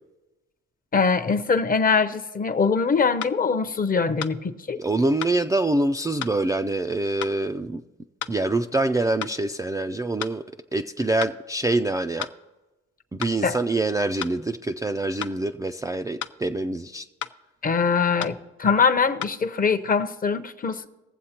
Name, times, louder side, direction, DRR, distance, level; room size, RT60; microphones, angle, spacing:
voice 1, 0.9-4.8 13.4-13.6 17.6-20.9, left 5 dB, 30° left, 0.7 m, -22 dB
sound 1, 2.4-2.5 3.2-3.4 4.2-4.4 5.2-5.4 6.2-6.4 7.2-7.4 8.2-8.4 9.2-9.4 10.2-10.4 11.2-11.4 12.2-12.4 13.2-13.4 14.2-14.4 15.2-15.4 16.2-16.4 17.2-17.4 18.2-18.4 19.2-19.4, left 12 dB, 70° left, 0.6 m, -33 dB
voice 2, 4.8-7.8 8.3-10.4 10.7-12.3 13.1-17.0, right 2 dB, 10° right, 0.3 m, -25 dB
19.0 x 7.5 x 2.9 m
cardioid pair, 90°, 30 cm